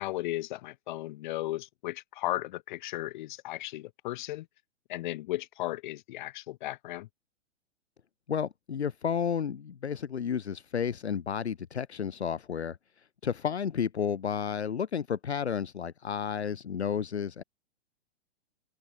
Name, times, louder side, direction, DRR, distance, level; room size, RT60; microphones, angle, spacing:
voice 1, 0.0-4.5 4.9-7.1, left 16 dB, 40° left, 2.7 m, -35 dB
voice 2, 8.3-12.8 13.2-17.4, left 7 dB, 65° left, 1.8 m, -32 dB
open air
figure-of-eight pair, 110°, 36 cm